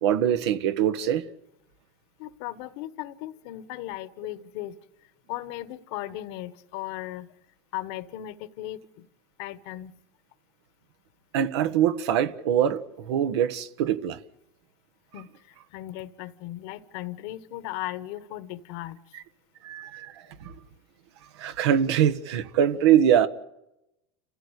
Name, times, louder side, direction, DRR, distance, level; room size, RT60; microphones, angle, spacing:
voice 1, 0.0-1.2 11.3-14.2 19.6-20.5 21.4-23.3, right 10 dB, 85° right, 1.4 m, -23 dB
voice 2, 2.2-4.7 5.3-7.3 7.7-8.8 9.4-9.9 15.1-15.3 15.7-19.0, left 15 dB, 65° left, 1.3 m, -36 dB
28.5 x 15.5 x 8.2 m
supercardioid pair, 135°, 14 cm